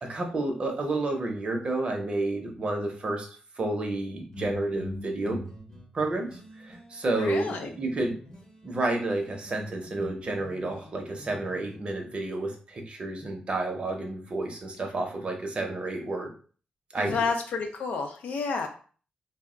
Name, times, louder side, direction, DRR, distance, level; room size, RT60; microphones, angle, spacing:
voice 1, 0.0-3.3 3.6-5.4 5.9-8.2 8.6-16.3 16.9-17.3, right 2 dB, 40° right, 3 dB, 0.6 m, -30 dB
sound 1, 4.2-8.9 9.2-11.8, left 1 dB, 30° left, 0.7 m, -43 dB
voice 2, 7.2-7.7 17.0-18.7, left 4 dB, 85° left, 4 dB, 0.5 m, -30 dB
2.2 x 2.1 x 3.6 m, 0.41 s
cardioid pair, 110°, 3 cm